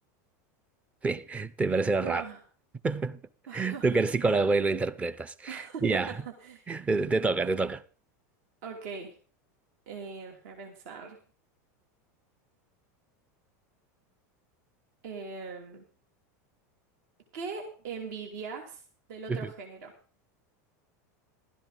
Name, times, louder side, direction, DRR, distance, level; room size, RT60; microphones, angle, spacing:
voice 1, 1.0-2.2 2.8-3.2 3.5-6.2 6.7-7.8 19.3-19.5, right 3 dB, 15° right, 0.5 m, -27 dB
voice 2, 2.0-2.4 3.5-3.9 5.5-6.0 6.4-6.8 8.6-9.1 9.9-11.2 15.0-15.8 17.3-18.8 19.1-19.9, right 5 dB, 65° right, 2.8 m, -40 dB
15.5 x 12.5 x 3.9 m
supercardioid pair, 145°, 9 cm